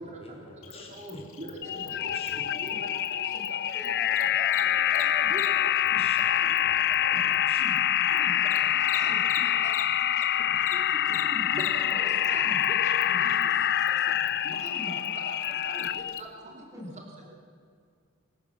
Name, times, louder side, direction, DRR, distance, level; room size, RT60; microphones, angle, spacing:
voice 1, 0.0-1.3 1.6-2.6 5.8-6.2 6.6-7.2 7.5-7.7, left 2 dB, 30° left, 0 dB, 4.6 m, -49 dB
Cricket, 0.6-10.3 10.6-16.2, left 11 dB, 70° left, 2.3 m, -45 dB
voice 2, 0.9-1.6 2.0-2.3 2.6-2.7 3.8-5.5 7.2-7.4 8.1-8.3 8.7-9.7 10.1-10.2 10.5-10.8 11.1-11.2 11.5-13.4 14.1-14.2 14.4-15.3 15.6-15.7 16.2-16.3, right 1 dB, 35° right, 0 dB, 2.9 m, -42 dB
sound 1, 1.6-16.2, left 11 dB, 50° left, 0.5 m, -26 dB
voice 3, 1.6-2.1 2.4-3.5 3.7-4.4 4.6-5.3 5.7-6.0 6.4-6.7 7.1-7.2 7.6-8.7 9.1-9.2 9.8-9.9 10.5-11.5 11.8-12.0 12.3-12.6 13.0-13.3 14.1-14.3 14.6-15.2 15.7-15.9 16.2-16.9, equal, 15° right, -3 dB, 7.0 m, -45 dB
26.0 x 15.5 x 7.4 m, 2.3 s
head